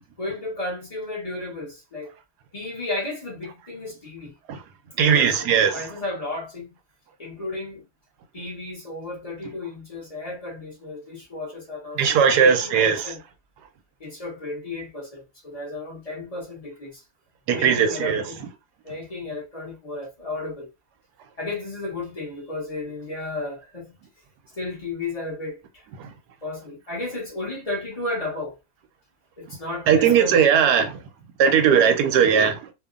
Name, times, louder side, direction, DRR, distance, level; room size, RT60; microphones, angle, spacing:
voice 1, 0.2-2.1 2.5-4.3 5.1-6.7 7.2-7.8 8.3-13.2 14.0-17.0 17.5-18.4 18.8-20.7 21.4-23.9 24.5-25.9 26.4-28.5 29.4-30.5, left 2 dB, 30° left, 0.8 m, -33 dB
voice 2, 5.0-5.8 12.0-13.0 17.5-18.3 26.0-26.1 29.9-31.0 31.4-32.6, right 7 dB, 85° right, 1.1 m, -18 dB
2.8 x 2.2 x 2.4 m
omnidirectional pair, 1.7 m